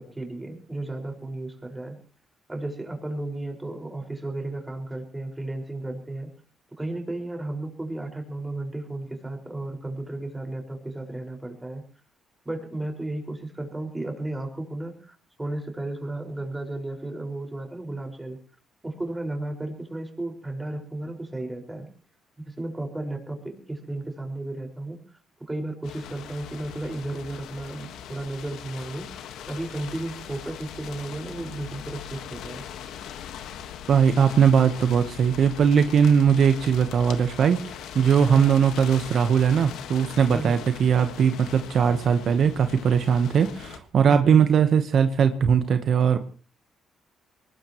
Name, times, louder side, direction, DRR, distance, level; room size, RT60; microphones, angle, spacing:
voice 1, 0.0-2.0 2.5-6.3 6.8-11.8 12.4-18.4 18.8-21.8 22.4-25.0 25.5-32.6 38.2-38.5 40.3-40.6, right 2 dB, 15° right, 3 dB, 5.2 m, -34 dB
sound 1, 25.8-43.8, left 9 dB, 85° left, 1.5 m, -40 dB
voice 2, 33.9-46.2, right 7 dB, 60° right, 9 dB, 1.1 m, -20 dB
22.5 x 20.5 x 3.1 m, 0.38 s
cardioid pair, 90°, 0 cm